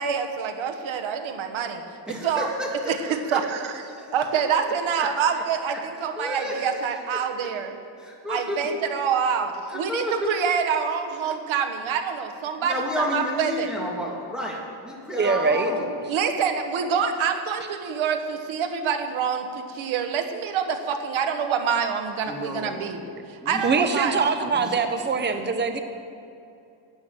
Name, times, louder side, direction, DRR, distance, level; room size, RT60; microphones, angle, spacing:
voice 1, 0.0-1.8 2.2-2.5 2.9-3.7 4.1-7.8 8.3-13.7 16.1-23.0 23.4-24.2, right 7 dB, 90° right, 5 dB, 1.3 m, -26 dB
voice 2, 2.1-3.0 3.3-3.4 3.9-4.4 5.0-5.1 5.7-5.8 6.2-6.8 7.1-7.5 8.0-8.7 9.7-10.3 11.2-11.3 12.6-15.9 22.2-22.9 23.4-24.1 24.5-25.3, left 1 dB, ahead, -3 dB, 2.4 m, -32 dB
voice 3, 15.1-15.7 23.6-25.8, right 4 dB, 25° right, 7 dB, 0.8 m, -23 dB
13.5 x 9.0 x 6.2 m, 2.5 s
cardioid pair, 125°, 46 cm